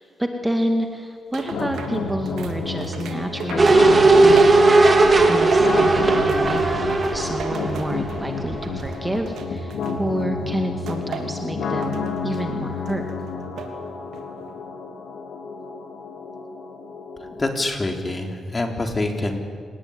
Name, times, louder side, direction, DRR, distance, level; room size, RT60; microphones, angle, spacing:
voice 1, 0.0-4.8 5.2-6.6 7.1-13.0, right 1 dB, 10° right, 4 dB, 2.1 m, -28 dB
sound 1, 1.3-5.2 5.5-8.3 8.6-10.3 10.9-11.4 11.8-12.5 12.9-13.8 14.1-14.5, right 6 dB, 85° right, 3.1 m, -36 dB
sound 2, 1.5-17.5, left 4 dB, 85° left, 3.2 m, -30 dB
sound 3, 3.6-8.5 8.9-9.0, right 3 dB, 25° right, 3.2 m, -16 dB
voice 2, 17.3-19.4, left 2 dB, 25° left, 4 dB, 3.6 m, -25 dB
28.5 x 19.0 x 9.8 m, 2.1 s
cardioid pair, 100°, 0 cm